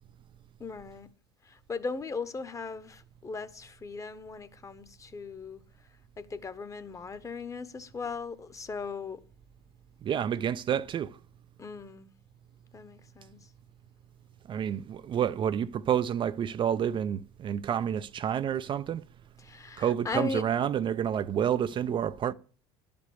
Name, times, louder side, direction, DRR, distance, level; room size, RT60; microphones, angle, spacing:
voice 1, 0.6-1.1 1.5-5.6 6.2-9.2 11.6-12.1 12.7-13.4 19.4-20.4, left 4 dB, 25° left, 1.2 m, -38 dB
voice 2, 10.0-11.2 14.5-19.1 19.8-22.3, right 9 dB, 35° right, 0.5 m, -29 dB
11.5 x 5.2 x 8.3 m
hypercardioid pair, 75°, 14 cm